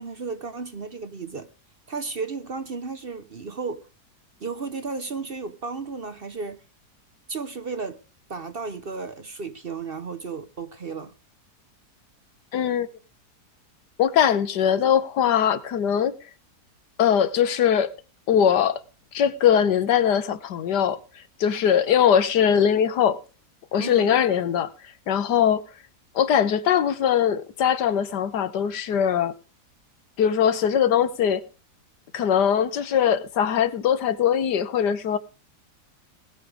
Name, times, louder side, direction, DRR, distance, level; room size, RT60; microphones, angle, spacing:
voice 1, 0.0-1.5 1.9-3.9 4.4-6.6 7.3-8.0 8.3-11.1 23.8-24.2, right 4 dB, 40° right, 0.9 m, -34 dB
voice 2, 12.5-12.9 14.0-16.2 17.0-17.9 18.3-18.8 19.1-21.0 21.4-23.2 23.7-24.7 25.1-25.6 26.1-29.3 30.2-31.4 32.1-35.2, left 8 dB, 85° left, 1.6 m, -21 dB
19.5 x 6.8 x 5.0 m
omnidirectional pair, 1.8 m